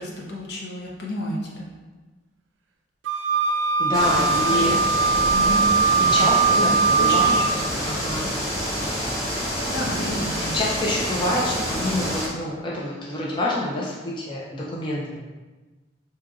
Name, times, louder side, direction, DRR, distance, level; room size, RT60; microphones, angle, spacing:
voice 1, 0.0-1.7 4.5-4.8 5.3-5.6 6.0-6.3 6.5-7.4 9.7-10.5, left 1 dB, 65° left, -3 dB, 0.8 m, -31 dB
Wind instrument woodwind instrument, 3.0-7.6, right 5 dB, 85° right, 0.4 m, -20 dB
voice 2, 3.8-4.7 6.0-7.4 7.9-8.4 10.3-15.2, left 1 dB, 25° left, -5 dB, 0.5 m, -27 dB
sound 1, 3.9-12.3, equal, ahead, 1.5 m, -27 dB
4.9 x 2.8 x 2.4 m, 1.3 s
head